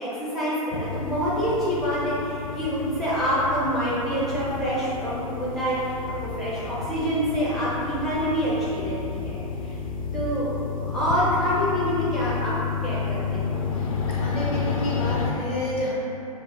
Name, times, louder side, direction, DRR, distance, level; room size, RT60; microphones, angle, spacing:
voice 1, 0.0-9.7 10.1-13.5, equal, ahead, -11 dB, 0.8 m, -26 dB
sound 1, 0.7-15.3, left 5 dB, 65° left, 0.5 m, -31 dB
voice 2, 13.7-15.9, left 1 dB, 30° left, -7 dB, 1.3 m, -30 dB
6.9 x 2.5 x 2.6 m, 3.0 s
figure-of-eight pair, 100°, 19 cm